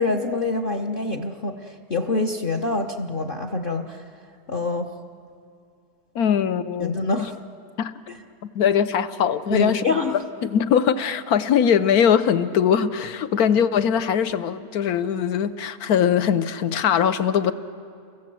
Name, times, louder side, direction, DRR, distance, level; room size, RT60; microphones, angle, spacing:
voice 1, 0.0-4.0 4.5-4.9 6.8-7.4 8.1-8.2 9.5-10.2, left 3 dB, 40° left, 0.9 m, -26 dB
voice 2, 6.1-7.0 7.8-7.9 8.5-9.8 10.4-17.5, left 8 dB, 70° left, 1.3 m, -21 dB
29.5 x 23.5 x 7.7 m
omnidirectional pair, 1.7 m